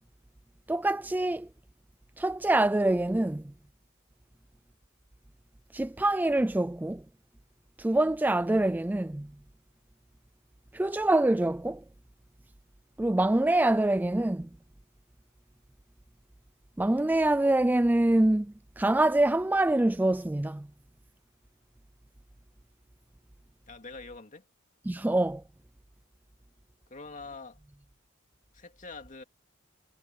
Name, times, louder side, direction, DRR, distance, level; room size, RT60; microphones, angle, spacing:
voice 1, 0.7-1.5 2.2-3.4 5.7-7.0 7.8-9.3 10.7-11.8 13.0-14.5 16.8-18.5 18.8-20.7 24.9-25.4, right 1 dB, 10° right, 0.3 m, -25 dB
voice 2, 23.7-24.5 26.9-27.6 28.5-29.2, left 3 dB, 35° left, 2.4 m, -44 dB
head